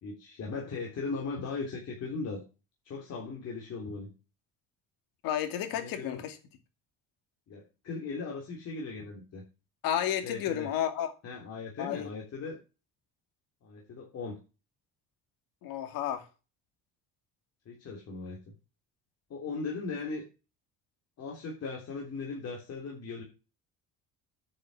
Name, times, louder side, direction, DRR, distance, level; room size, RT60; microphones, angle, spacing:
voice 1, 0.0-2.4 2.8-4.1 5.7-6.2 7.5-9.4 10.2-10.7 11.2-12.6 13.6-14.4 17.6-18.4 19.3-20.2 21.2-23.2, left 4 dB, 45° left, 3.3 m, -38 dB
voice 2, 5.2-6.4 9.8-11.1 11.8-12.1 15.6-16.3 19.9-20.0, left 10 dB, 80° left, 2.6 m, -32 dB
9.9 x 6.6 x 7.6 m
cardioid pair, 145°, 34 cm